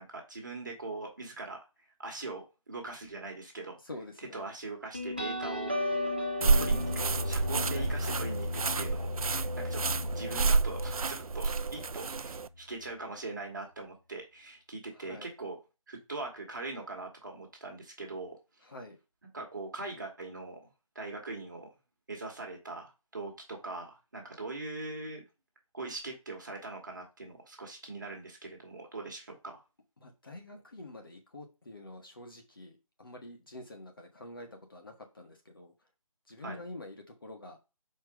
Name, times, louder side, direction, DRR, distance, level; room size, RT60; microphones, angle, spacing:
voice 1, 0.0-1.6 2.0-3.8 4.3-5.7 6.5-15.6 15.9-18.4 19.3-20.7 21.0-21.7 22.1-25.3 25.7-29.6 36.4-36.6, right 3 dB, 35° right, 1 dB, 1.8 m, -41 dB
voice 2, 3.8-4.5 7.6-8.0 12.6-12.7 14.9-15.3 18.6-19.0 30.0-35.7 36.3-37.6, left 2 dB, 40° left, 2 dB, 1.5 m, -47 dB
sound 1, 4.9-12.1, left 1 dB, 20° right, 0.5 m, -35 dB
sound 2, 6.4-12.5, right 4 dB, 75° right, 0.5 m, -30 dB
5.1 x 4.6 x 5.0 m, 0.29 s
figure-of-eight pair, 180°, 18 cm